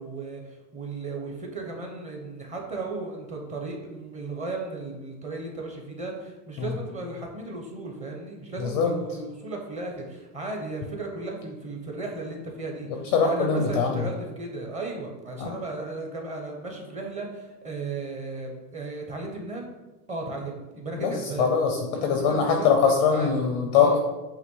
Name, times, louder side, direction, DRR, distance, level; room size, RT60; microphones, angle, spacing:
voice 1, 0.0-19.7 20.1-21.5 22.3-23.5 23.7-24.0, right 3 dB, 15° right, 1 dB, 0.7 m, -35 dB
voice 2, 8.6-8.9 12.9-14.0 15.4-15.5 21.0-21.1 21.4-24.0, left 6 dB, 30° left, 4 dB, 0.4 m, -22 dB
8.3 x 3.0 x 6.1 m, 1.1 s
supercardioid pair, 165°, 50 cm